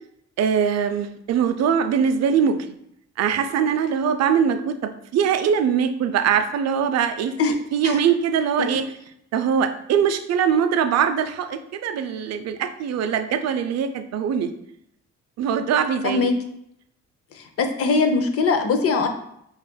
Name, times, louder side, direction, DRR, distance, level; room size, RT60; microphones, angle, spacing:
voice 1, 0.4-2.7 3.2-7.3 7.7-8.8 9.3-14.5 15.4-16.3, right 7 dB, 60° right, 8 dB, 0.4 m, -22 dB
voice 2, 17.3-19.1, left 4 dB, 50° left, 7 dB, 0.5 m, -21 dB
5.5 x 2.4 x 2.2 m, 0.74 s
cardioid pair, 90°, 30 cm